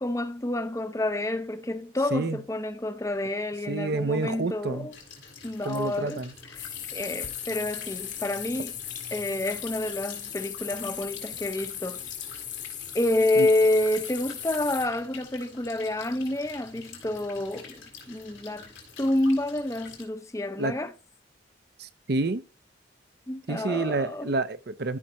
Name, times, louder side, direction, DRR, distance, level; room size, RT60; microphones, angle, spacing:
voice 1, 0.0-4.9 5.4-6.2 6.6-8.7 9.1-12.0 12.9-17.8 18.1-18.7 19.0-20.9 23.3-24.3, left 1 dB, 15° left, 0.6 m, -28 dB
voice 2, 2.1-2.4 3.7-4.9 5.6-6.3 13.4-13.5 20.6-20.8 21.8-22.4 23.5-25.0, right 3 dB, 55° right, 0.6 m, -29 dB
sound 1, 4.9-20.0, left 4 dB, 85° left, 3.8 m, -47 dB
sound 2, 6.5-14.9, left 10 dB, 40° left, 1.3 m, -37 dB
13.0 x 5.8 x 2.9 m
head